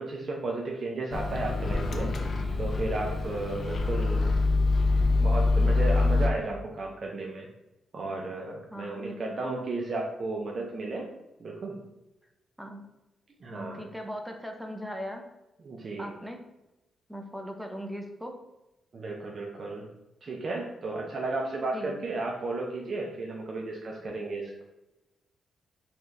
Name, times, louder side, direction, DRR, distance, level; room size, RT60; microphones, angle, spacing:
voice 1, 0.0-2.3 2.6-4.5 5.2-7.5 7.9-11.1 11.4-11.8 13.4-13.9 15.6-16.1 18.9-19.9 20.2-24.6, right 2 dB, 45° right, -1 dB, 0.6 m, -34 dB
Microwave oven, 1.1-6.3, left 3 dB, 55° left, 0.5 m, -25 dB
voice 2, 8.7-9.4 12.6-12.8 13.5-15.2 16.0-16.4 17.1-18.3 21.7-22.0, equal, ahead, 3 dB, 0.7 m, -39 dB
4.3 x 2.4 x 3.3 m, 0.95 s
cardioid pair, 75°, 0 cm